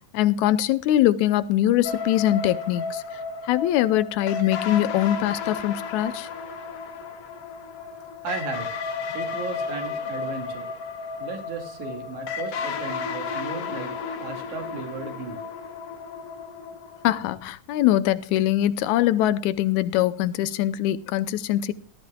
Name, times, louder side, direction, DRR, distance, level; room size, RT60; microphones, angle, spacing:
voice 1, 0.1-6.3 17.0-21.7, left 13 dB, 80° left, 2.1 m, -23 dB
sound 1, 1.8-17.4, left 5 dB, 60° left, 2.1 m, -33 dB
voice 2, 8.2-8.7 9.1-10.7 11.2-13.9 14.2-15.4, right 4 dB, 85° right, 3.7 m, -35 dB
18.0 x 13.5 x 2.3 m
omnidirectional pair, 3.3 m